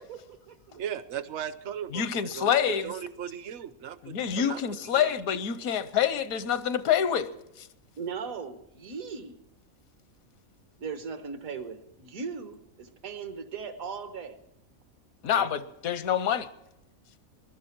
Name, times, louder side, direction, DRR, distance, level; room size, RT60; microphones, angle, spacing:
voice 1, 0.0-0.8 8.0-9.3 10.8-14.4, right 5 dB, 75° right, 1.6 m, -38 dB
voice 2, 0.8-4.6 4.9-5.1 15.3-15.5, right 9 dB, 60° right, 1.0 m, -37 dB
voice 3, 1.9-2.9 4.0-7.7 15.2-16.5, left 8 dB, 80° left, 1.2 m, -27 dB
21.5 x 11.5 x 4.5 m
omnidirectional pair, 1.5 m